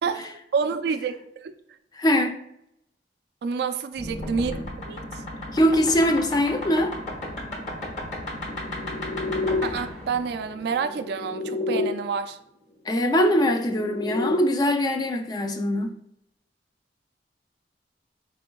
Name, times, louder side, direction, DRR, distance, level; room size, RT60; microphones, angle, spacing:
voice 1, 0.0-1.5 3.4-4.6 4.9-5.0 9.6-12.4, right 5 dB, 65° right, 0.3 m, -28 dB
voice 2, 2.0-2.4 5.5-6.9 12.9-15.9, equal, 25° left, 0.3 m, -22 dB
sound 1, 4.0-11.9 13.2-14.4, left 2 dB, 45° left, 1.0 m, -32 dB
4.2 x 3.7 x 2.2 m
head